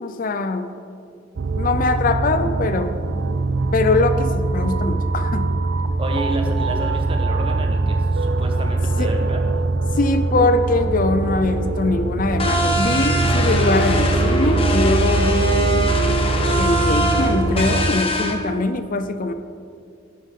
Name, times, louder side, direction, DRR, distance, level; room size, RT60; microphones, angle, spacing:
voice 1, 0.0-0.7 1.5-2.9 3.7-5.5 9.0-9.1 10.0-16.0 16.6-19.3, left 2 dB, 45° left, 10 dB, 0.5 m, -22 dB
sound 1, 1.4-17.9, right 3 dB, 85° right, 0.5 m, -22 dB
voice 2, 6.0-9.4, right 1 dB, 30° right, 2 dB, 1.3 m, -29 dB
sound 2, 12.4-18.3, equal, 30° left, 1.2 m, -22 dB
11.5 x 11.0 x 3.7 m, 2.4 s
head